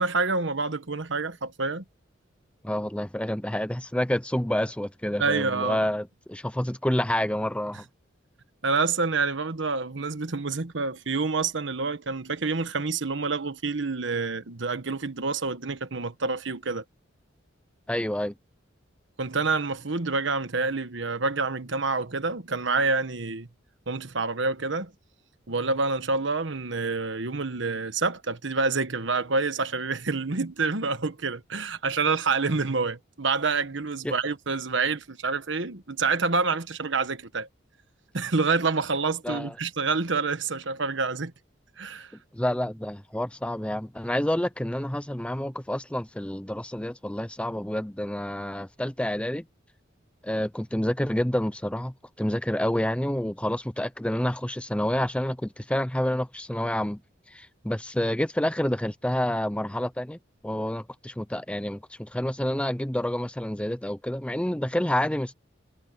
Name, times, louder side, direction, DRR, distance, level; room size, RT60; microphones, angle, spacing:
voice 1, 0.0-1.8 5.2-5.8 8.6-16.8 19.2-23.5 23.9-24.9 25.5-37.5 38.1-41.3 41.8-42.1, right 4 dB, 65° right, 1.3 m, -27 dB
voice 2, 2.6-7.8 17.9-18.3 34.0-34.1 39.2-39.5 42.3-49.4 50.2-57.0 57.3-60.2 60.4-65.3, left 1 dB, 5° left, 0.7 m, -28 dB
head